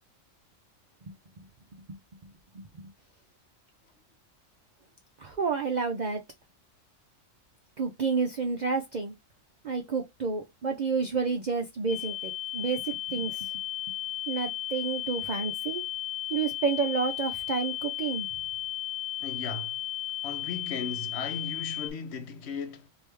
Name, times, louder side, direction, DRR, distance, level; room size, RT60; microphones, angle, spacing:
voice 1, 2.2-2.9 5.2-6.2 7.8-9.1 9.6-13.5 14.3-15.8 16.3-18.3, right 5 dB, 55° right, 0.5 m, -30 dB
sound 1, 11.9-21.9, left 14 dB, 85° left, 1.0 m, -35 dB
voice 2, 19.2-19.7 20.2-22.9, left 5 dB, 60° left, 0.8 m, -36 dB
3.3 x 2.7 x 3.1 m
omnidirectional pair, 1.4 m